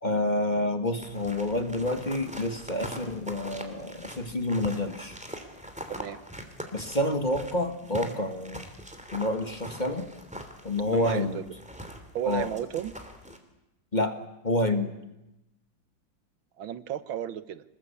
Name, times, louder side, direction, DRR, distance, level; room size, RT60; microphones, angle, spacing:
voice 1, 0.0-5.2 6.7-8.6 9.1-10.1 10.6-11.4 12.2-12.5 13.9-14.2 14.4-14.9, left 1 dB, 25° left, 7 dB, 1.5 m, -28 dB
sound 1, 1.0-13.4, equal, 5° right, 2.8 m, -42 dB
voice 2, 5.9-6.2 10.9-11.4 12.1-12.9 16.6-17.6, right 11 dB, 85° right, 13 dB, 1.9 m, -33 dB
27.0 x 20.0 x 8.5 m, 0.94 s
omnidirectional pair, 2.1 m